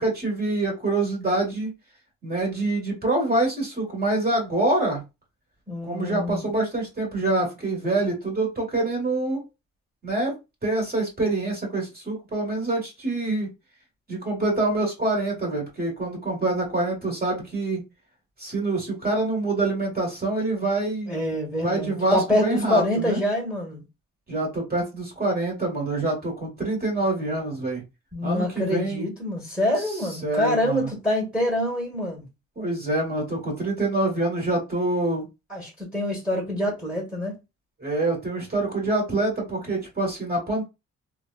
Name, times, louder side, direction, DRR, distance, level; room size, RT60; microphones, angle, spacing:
voice 1, 0.0-1.7 2.2-5.0 5.8-9.4 10.0-10.3 10.6-13.5 14.1-17.8 18.4-21.2 21.6-23.2 24.3-27.8 28.2-29.1 30.2-30.9 32.6-35.3 37.8-40.6, right 2 dB, 30° right, 1.8 m, -26 dB
voice 2, 5.7-6.4 21.1-23.8 28.1-32.2 35.5-37.4, left 1 dB, 5° right, 1.5 m, -26 dB
3.2 x 2.3 x 2.4 m
cardioid pair, 90°, 30 cm